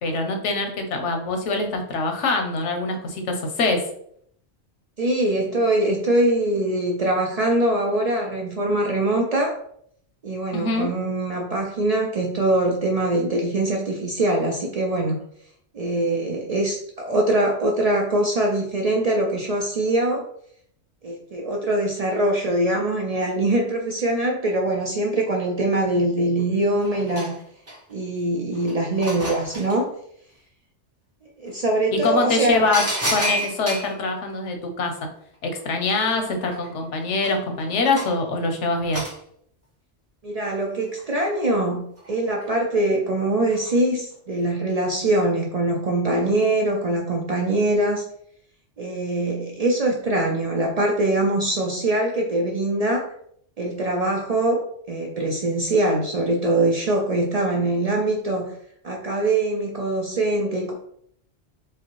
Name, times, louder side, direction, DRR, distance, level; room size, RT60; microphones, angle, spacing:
voice 1, 0.0-3.9 10.5-10.9 31.9-35.0 35.4-39.0, left 3 dB, 90° left, 5 dB, 1.0 m, -24 dB
voice 2, 5.0-9.5 10.2-15.2 15.7-20.2 21.0-27.4 27.9-29.9 31.4-32.6 40.2-48.0 48.8-53.1 53.6-54.6 54.9-58.5 58.8-60.7, right 1 dB, 50° right, 0 dB, 0.4 m, -23 dB
sound 1, 26.4-26.5 26.8-28.0 28.5-29.8 31.5-31.6 32.0-34.0 35.6-35.7 36.0-38.3 38.9-39.2 40.7-41.5 42.0-42.5 43.5-43.8 44.1-44.2, right 1 dB, 15° right, 0.7 m, -30 dB
4.8 x 2.1 x 3.0 m, 0.66 s
omnidirectional pair, 1.2 m